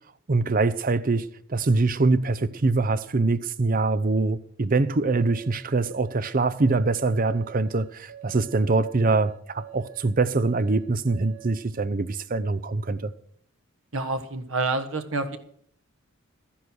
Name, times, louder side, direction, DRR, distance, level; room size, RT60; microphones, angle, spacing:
voice 1, 0.3-13.1, right 3 dB, 40° right, 0.6 m, -24 dB
sound 1, 5.1-11.6, right 13 dB, 85° right, 1.7 m, -46 dB
voice 2, 13.9-15.4, right 3 dB, 65° right, 1.4 m, -28 dB
13.5 x 10.0 x 6.2 m
head